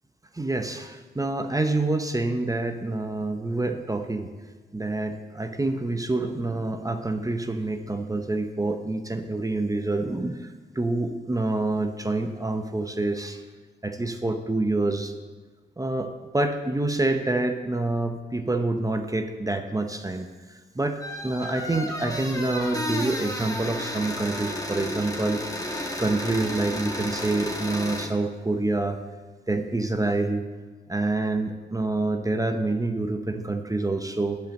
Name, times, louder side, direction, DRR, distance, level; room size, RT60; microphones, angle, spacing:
voice 1, 0.3-4.3 4.7-10.5 10.8-13.4 13.8-15.1 15.8-20.3 20.7-25.4 26.0-29.0 29.5-30.4 30.9-34.4, right 2 dB, 15° right, 6 dB, 0.7 m, -27 dB
sound 1, 21.0-28.1, left 1 dB, 20° left, 1.4 m, -32 dB
10.5 x 5.3 x 7.5 m, 1.4 s
wide cardioid pair, 105°, 20 cm